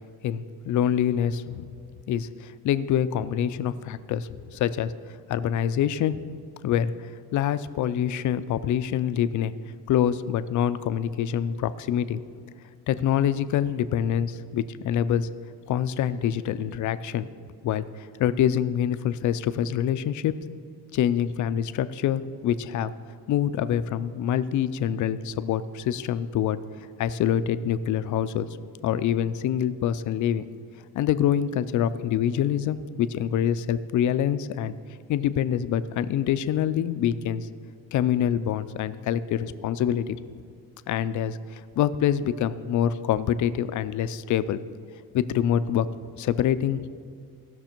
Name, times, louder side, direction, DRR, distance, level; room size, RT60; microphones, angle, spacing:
voice 1, 0.2-1.7 2.1-4.9 5.3-6.2 6.6-6.9 7.3-9.5 9.9-12.2 12.9-15.3 15.7-17.3 17.6-20.4 20.9-22.9 23.3-26.6 27.0-28.5 28.8-30.4 30.9-34.7 35.1-37.5 37.9-40.2 40.9-44.6 45.1-45.9 46.2-46.9, left 10 dB, 50° left, 13 dB, 0.4 m, -25 dB
16.0 x 6.1 x 4.5 m, 2.2 s
cardioid pair, 140°, 38 cm